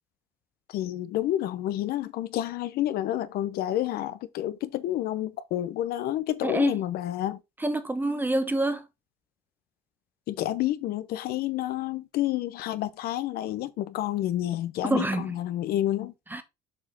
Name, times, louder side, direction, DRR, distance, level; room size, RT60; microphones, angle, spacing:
voice 1, 0.7-7.4 10.3-16.1, left 13 dB, 75° left, 0.8 m, -29 dB
voice 2, 6.4-6.8 7.6-8.8 14.8-15.4 16.3-16.4, right 2 dB, 10° right, 1.1 m, -27 dB
7.1 x 4.8 x 3.4 m
cardioid pair, 95°, 16 cm